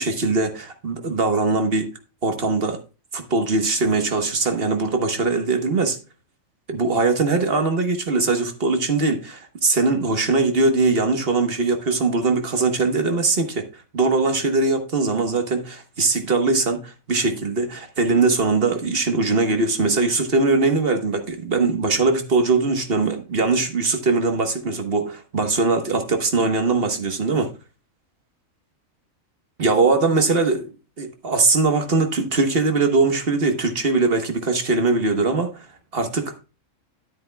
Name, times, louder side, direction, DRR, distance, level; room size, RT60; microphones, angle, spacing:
voice 1, 0.0-1.9 2.2-2.8 3.1-6.0 6.7-13.7 13.9-27.5 29.6-30.7 31.0-35.7 35.9-36.4, right 3 dB, 45° right, 1.4 m, -21 dB
10.5 x 9.3 x 2.2 m
omnidirectional pair, 1.4 m